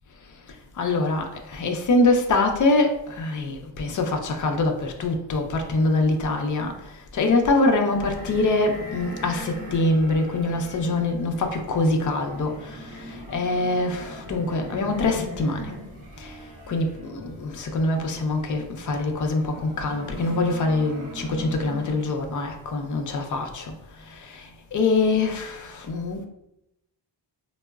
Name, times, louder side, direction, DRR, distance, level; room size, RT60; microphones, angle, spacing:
voice 1, 0.5-15.7 16.2-16.4 16.7-26.3, left 2 dB, 45° left, 0.5 m, -24 dB
sound 1, 7.8-22.3, right 1 dB, 45° right, 0.6 m, -40 dB
4.4 x 2.0 x 2.3 m
wide cardioid pair, 135°, 44 cm